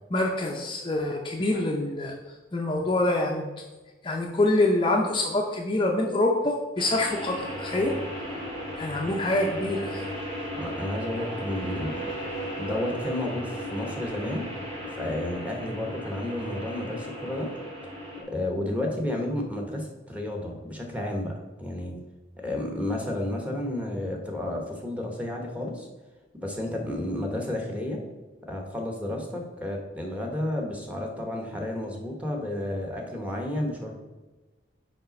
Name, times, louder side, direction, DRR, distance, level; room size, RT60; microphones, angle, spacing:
voice 1, 0.1-2.1 2.5-3.5 4.0-7.9 8.8-10.0, left 2 dB, 25° left, 0 dB, 0.6 m, -25 dB
sound 1, 6.8-18.2, equal, 30° right, 2.3 m, -36 dB
voice 2, 10.6-12.1 12.6-14.5 14.9-17.5 18.2-21.3 21.6-22.0 22.4-25.9 26.4-28.0 28.5-34.0, left 1 dB, 5° right, 0 dB, 1.2 m, -31 dB
5.6 x 5.0 x 5.2 m, 1.2 s
head